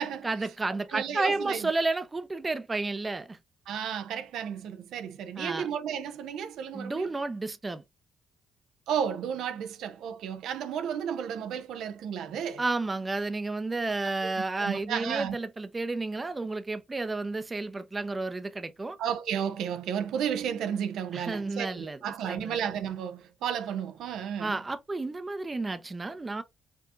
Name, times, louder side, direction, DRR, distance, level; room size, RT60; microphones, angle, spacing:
voice 1, 0.2-3.4 5.4-5.7 6.7-7.8 12.6-19.0 21.1-22.6 24.4-26.4, right 3 dB, 25° right, 0.5 m, -31 dB
voice 2, 0.9-1.6 3.7-7.1 8.9-12.6 14.2-14.3 14.6-15.4 19.0-24.6, right 8 dB, 80° right, 0.5 m, -33 dB
4.5 x 2.7 x 2.4 m
cardioid pair, 90°, 0 cm